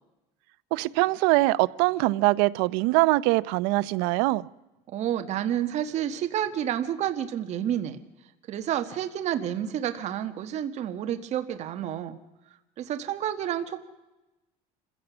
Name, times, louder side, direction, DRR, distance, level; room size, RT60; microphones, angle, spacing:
voice 1, 0.7-4.4, right 21 dB, 80° right, 0.7 m, -23 dB
voice 2, 4.9-8.0 8.5-12.2 12.8-13.8, right 10 dB, 45° right, 1.4 m, -30 dB
27.0 x 16.0 x 6.2 m
cardioid pair, 140°, 16 cm